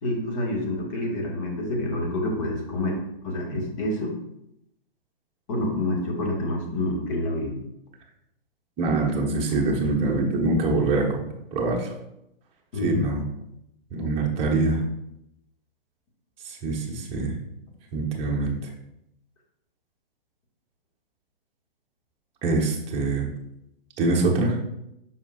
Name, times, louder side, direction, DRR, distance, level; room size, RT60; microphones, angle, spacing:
voice 1, 0.0-4.1 5.5-7.6 12.7-13.0, left 1 dB, 35° left, -1 dB, 1.6 m, -28 dB
voice 2, 8.8-11.2 11.5-11.9 12.8-13.2 13.9-14.8 16.4-17.3 17.9-18.7 22.4-23.3 24.0-24.6, right 3 dB, 20° right, 0 dB, 1.0 m, -24 dB
7.2 x 5.8 x 2.4 m, 0.81 s
figure-of-eight pair, 120°, 30 cm